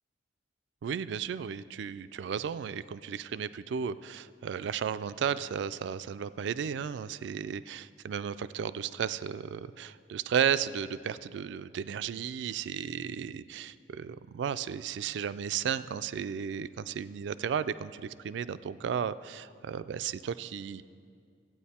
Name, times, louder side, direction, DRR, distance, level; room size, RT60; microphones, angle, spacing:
voice 1, 0.8-20.8, right 7 dB, 65° right, 15 dB, 0.3 m, -34 dB
13.5 x 8.9 x 4.2 m, 2.2 s
head